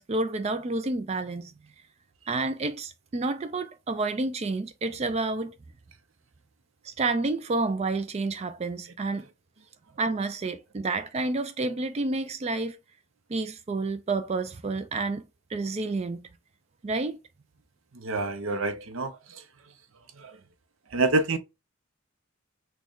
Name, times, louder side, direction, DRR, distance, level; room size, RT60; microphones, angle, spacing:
voice 1, 0.0-1.5 2.3-5.5 6.8-9.2 10.0-12.8 13.3-16.3 16.8-17.2, right 3 dB, 30° right, 0.4 m, -29 dB
voice 2, 17.9-19.4 20.2-20.4 20.9-21.4, right 3 dB, 70° right, 0.6 m, -27 dB
6.2 x 2.3 x 3.7 m
head